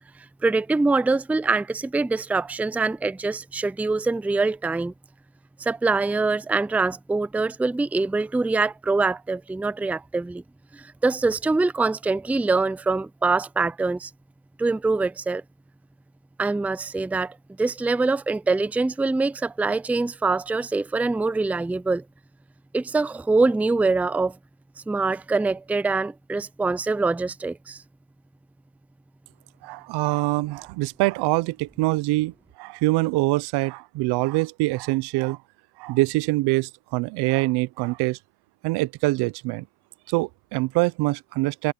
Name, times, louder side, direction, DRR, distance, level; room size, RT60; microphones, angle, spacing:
voice 1, 0.4-4.9 5.6-10.4 10.7-14.1 14.6-15.4 16.4-22.0 22.7-24.4 24.9-27.8, right 3 dB, 5° right, 0.5 m, -24 dB
voice 2, 29.6-35.4 35.8-38.2 38.6-39.7 40.1-41.7, right 21 dB, 70° right, 0.8 m, -24 dB
supercardioid pair, 90°, 41 cm